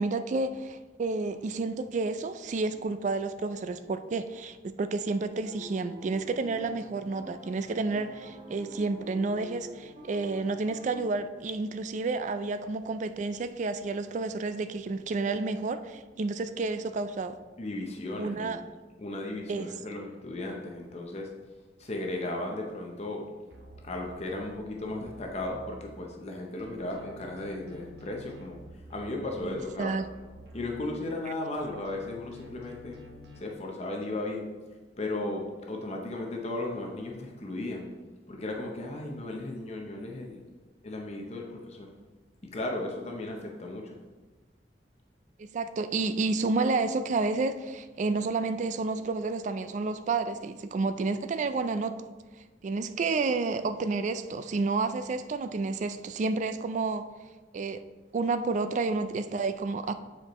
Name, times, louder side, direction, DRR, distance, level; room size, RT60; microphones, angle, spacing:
voice 1, 0.0-17.4 18.2-18.6 19.5-19.7 29.4-30.1 45.4-52.1 52.6-57.0 57.5-57.8 58.1-59.9, right 3 dB, 40° right, 11 dB, 0.3 m, -30 dB
sound 1, 5.4-11.0, equal, 25° right, 0.8 m, -47 dB
voice 2, 17.6-18.5 19.0-21.3 21.8-23.2 23.8-28.6 28.9-29.9 30.5-33.0 33.4-34.5 35.0-37.9 38.3-40.4 40.8-41.9 42.5-44.0, left 2 dB, 35° left, 1 dB, 0.7 m, -35 dB
sound 2, 23.5-26.3 26.6-31.2 31.5-33.4, equal, 65° right, 0.8 m, -50 dB
7.5 x 4.5 x 3.0 m, 1.3 s
head